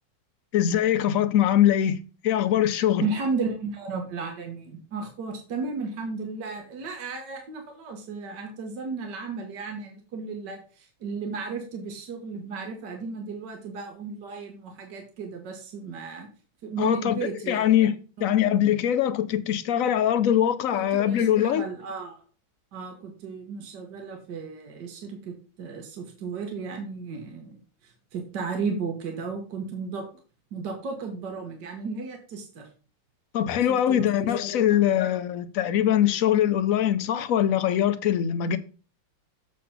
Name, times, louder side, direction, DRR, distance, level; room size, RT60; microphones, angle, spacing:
voice 1, 0.5-3.0 16.8-17.9 18.2-21.6 33.3-38.6, left 10 dB, 65° left, 0.8 m, -22 dB
voice 2, 3.0-16.3 16.6-17.7 18.2-18.3 20.7-22.2 22.7-30.1 30.5-32.7 33.7-34.1 34.7-34.9, right 4 dB, 65° right, 2.0 m, -34 dB
7.6 x 4.0 x 5.6 m
omnidirectional pair, 2.0 m